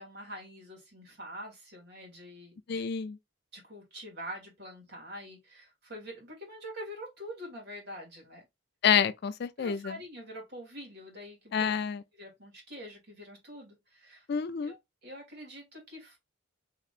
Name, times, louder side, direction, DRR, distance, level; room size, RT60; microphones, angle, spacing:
voice 1, 0.0-2.8 3.5-8.5 9.6-11.7 12.1-14.3 14.7-16.2, equal, 50° right, 2.4 m, -45 dB
voice 2, 2.7-3.2 8.8-10.0 11.5-12.0 14.3-14.7, left 7 dB, 50° left, 0.3 m, -28 dB
5.8 x 3.0 x 2.4 m
head